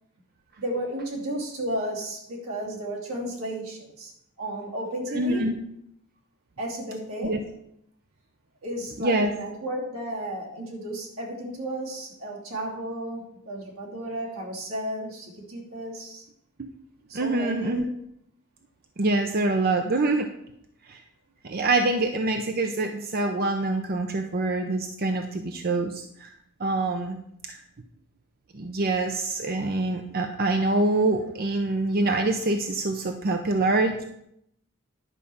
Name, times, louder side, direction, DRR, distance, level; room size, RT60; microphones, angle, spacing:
voice 1, 0.6-4.1 4.4-5.5 6.6-7.4 8.6-16.2 17.1-17.9, right 1 dB, 80° right, -3 dB, 3.0 m, -33 dB
voice 2, 5.1-5.6 7.2-7.4 9.0-9.3 16.6-16.7 17.1-17.8 19.0-20.3 20.9-21.0 21.4-26.3 26.6-27.2 27.4-27.6 28.5-34.0, right 2 dB, 45° right, 5 dB, 0.7 m, -25 dB
11.0 x 4.9 x 7.1 m, 0.77 s
head